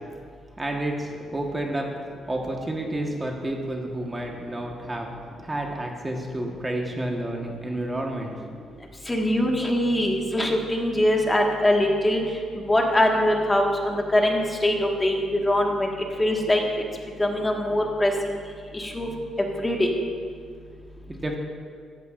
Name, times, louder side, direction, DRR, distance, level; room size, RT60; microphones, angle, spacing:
voice 1, 0.6-1.9 2.3-5.1 5.4-8.3 21.1-21.4, right 1 dB, 20° right, 0 dB, 1.3 m, -30 dB
voice 2, 9.1-12.2 12.7-15.9 16.2-16.6 17.2-18.3 18.7-19.1 19.6-19.9, left 1 dB, 15° left, 0 dB, 1.7 m, -22 dB
15.0 x 13.0 x 2.5 m, 2.1 s
cardioid pair, 90°, 0 cm